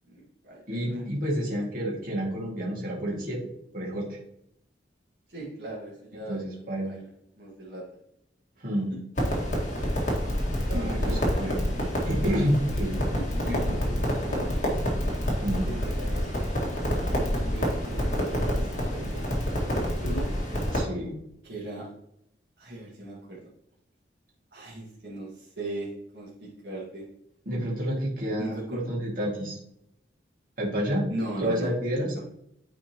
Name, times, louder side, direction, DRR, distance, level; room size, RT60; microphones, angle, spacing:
voice 1, 0.1-1.1 5.3-7.1 7.4-7.8 10.6-11.5 12.0-14.8 15.7-16.3 17.2-19.2 19.9-20.3 21.4-21.9 22.6-23.4 24.5-27.0 28.4-28.8 31.1-31.7 32.1-32.2, right 1 dB, 65° right, -6 dB, 1.8 m, -38 dB
voice 2, 0.7-3.4 3.7-4.2 6.1-6.9 8.6-8.9 10.7-11.6 12.0-13.0 15.4-15.7 17.1-17.3 20.7-21.1 27.5-29.6 30.6-31.0 31.4-32.2, equal, 50° right, -4 dB, 2.2 m, -29 dB
Crackle, 9.2-20.8, equal, 40° left, 2.0 m, -27 dB
10.0 x 4.2 x 3.0 m, 0.75 s
head